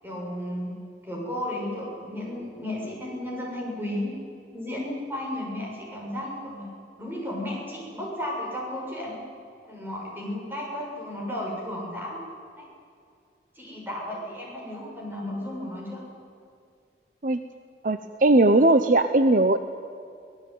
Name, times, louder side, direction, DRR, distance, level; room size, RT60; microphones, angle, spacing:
voice 1, 0.0-0.8 1.0-4.1 4.5-6.7 7.0-9.2 9.6-12.2 12.6-12.7 13.5-16.0, left 1 dB, 10° right, -2 dB, 6.9 m, -33 dB
voice 2, 17.8-19.6, right 2 dB, 45° right, 9 dB, 0.8 m, -19 dB
24.5 x 19.0 x 9.5 m, 2.4 s
head